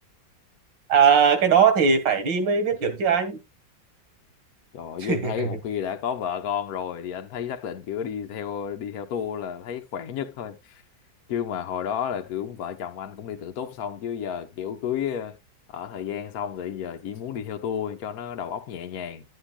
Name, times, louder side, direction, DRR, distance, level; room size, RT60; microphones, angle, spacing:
voice 1, 0.9-3.4 5.0-5.5, right 6 dB, 80° right, 2.3 m, -20 dB
voice 2, 4.7-10.8 11.3-15.4 15.7-19.2, left 8 dB, 60° left, 1.3 m, -31 dB
11.5 x 9.0 x 2.3 m
omnidirectional pair, 2.0 m